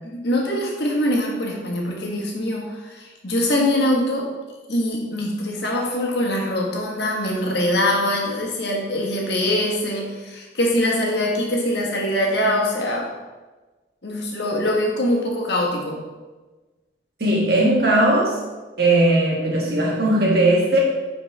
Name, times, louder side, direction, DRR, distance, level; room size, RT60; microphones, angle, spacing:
voice 1, 0.0-4.3 4.7-13.1 14.0-16.0, left 1 dB, 65° left, -1 dB, 1.4 m, -23 dB
voice 2, 17.2-18.4 18.8-20.8, right 1 dB, 55° right, -3 dB, 1.7 m, -18 dB
9.6 x 4.3 x 3.3 m, 1.2 s
head